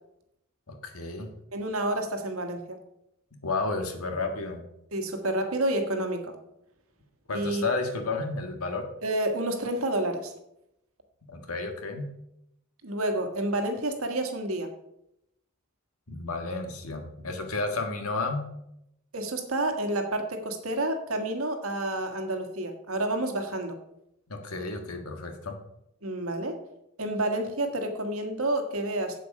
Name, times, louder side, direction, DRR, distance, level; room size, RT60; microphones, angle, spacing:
voice 1, 0.7-1.3 3.4-4.6 7.3-8.9 11.3-12.1 16.1-18.5 24.3-25.6, left 3 dB, 90° left, 5 dB, 1.6 m, -32 dB
voice 2, 1.5-2.8 4.9-6.3 7.3-7.6 9.0-10.3 12.8-14.7 19.1-23.8 26.0-26.6 27.0-29.2, right 1 dB, 80° right, 5 dB, 1.6 m, -29 dB
8.0 x 7.7 x 5.4 m, 0.82 s
head